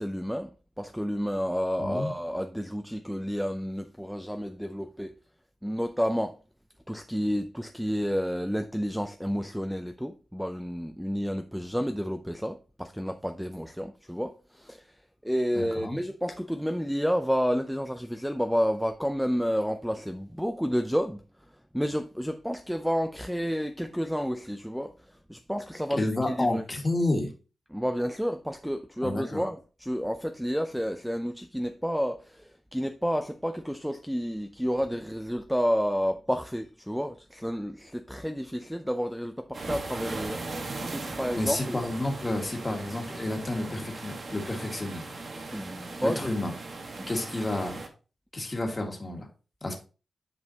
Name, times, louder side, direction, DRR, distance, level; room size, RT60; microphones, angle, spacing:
voice 1, 0.0-5.2 5.6-6.4 6.9-15.0 15.2-21.2 21.7-26.6 27.7-41.8 45.5-46.3 47.0-47.1, equal, ahead, 0.4 m, -30 dB
voice 2, 1.8-2.1 15.5-16.0 26.0-27.3 29.0-29.4 41.4-45.1 46.0-46.5 47.1-47.8 48.3-49.3 49.6-49.8, left 2 dB, 20° left, 1.8 m, -30 dB
sound 1, 39.5-47.9, right 3 dB, 50° right, 1.3 m, -38 dB
9.2 x 5.4 x 2.8 m
wide cardioid pair, 120°, 0 cm